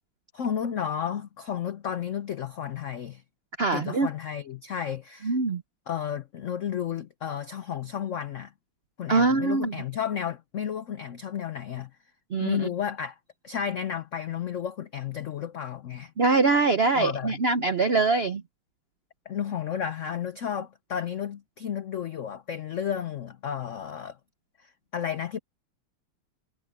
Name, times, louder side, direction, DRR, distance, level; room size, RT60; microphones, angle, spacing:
voice 1, 0.3-3.2 3.7-5.4 5.9-8.5 9.0-11.9 12.4-13.2 13.4-16.1 16.9-17.4 19.3-24.2 24.6-25.4, left 8 dB, 80° left, 0.6 m, -32 dB
voice 2, 3.6-4.1 5.2-5.6 9.1-9.7 12.3-12.7 16.2-18.4, right 3 dB, 70° right, 0.5 m, -23 dB
omnidirectional pair, 2.3 m